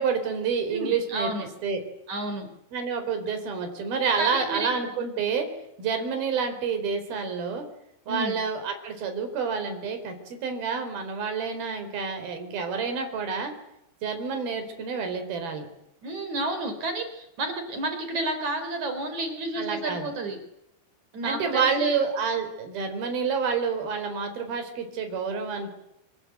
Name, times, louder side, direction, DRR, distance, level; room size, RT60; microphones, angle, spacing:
voice 1, 0.0-1.3 1.6-1.8 2.7-5.5 5.8-7.6 8.1-13.5 14.0-15.7 19.6-20.1 21.2-25.8, right 5 dB, 65° right, 6 dB, 5.8 m, -28 dB
voice 2, 0.7-1.5 2.1-2.5 4.2-4.7 8.1-8.4 16.0-20.4 21.1-22.0, right 2 dB, 45° right, 8 dB, 5.0 m, -31 dB
27.5 x 26.5 x 8.0 m, 0.81 s
omnidirectional pair, 4.7 m